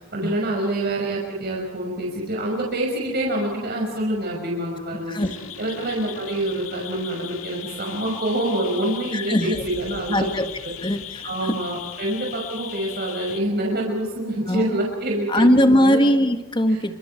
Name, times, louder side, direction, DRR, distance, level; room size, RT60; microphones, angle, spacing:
voice 1, 0.0-5.1 5.6-10.3 11.2-15.4 15.7-16.0 16.7-16.8, right 1 dB, 50° right, -1 dB, 5.8 m, -26 dB
sound 1, 5.2-13.4, left 9 dB, 75° left, 2.1 m, -37 dB
voice 2, 9.1-9.6 10.1-10.5 10.8-11.6 14.5-14.8 15.3-17.0, equal, 25° left, 7 dB, 1.8 m, -20 dB
28.5 x 26.0 x 4.6 m, 1.1 s
head